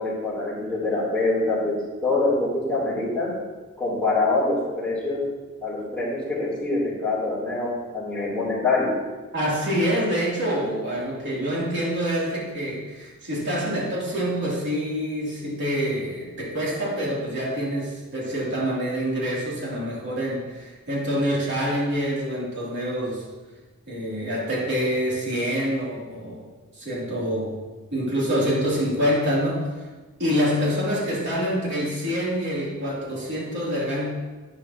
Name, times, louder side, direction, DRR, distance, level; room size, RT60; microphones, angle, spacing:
voice 1, 0.0-3.3 3.8-5.2 5.6-8.9, left 2 dB, 5° left, -8 dB, 3.4 m, -25 dB
voice 2, 9.3-23.2 23.9-26.5 26.7-27.6 27.9-29.7 30.2-34.1, equal, 55° right, -6 dB, 3.2 m, -26 dB
11.0 x 9.5 x 3.0 m, 1.3 s
head